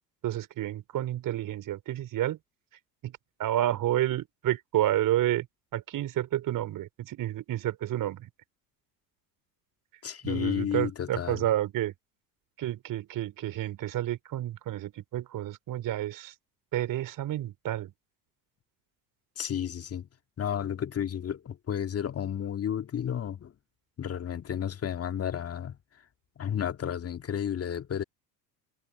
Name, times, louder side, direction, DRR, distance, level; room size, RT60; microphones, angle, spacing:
voice 1, 0.2-2.4 3.0-5.5 5.7-8.3 10.2-11.9 12.6-16.3 16.7-17.9, right 13 dB, 40° right, 4.4 m, -30 dB
voice 2, 10.0-11.4 19.4-20.1 20.4-23.5 24.0-25.8 26.4-28.0, left 9 dB, 30° left, 2.1 m, -32 dB
figure-of-eight pair, 65°, 48 cm